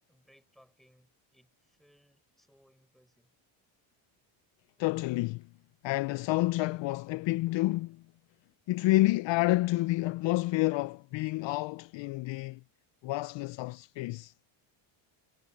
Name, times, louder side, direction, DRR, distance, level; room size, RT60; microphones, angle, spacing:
voice 1, 0.0-3.3, equal, ahead, 6.2 m, -65 dB
voice 2, 4.8-5.5 5.8-8.0 8.7-12.6 13.0-14.3, left 19 dB, 60° left, 0.5 m, -29 dB
cardioid pair, 100°, 50 cm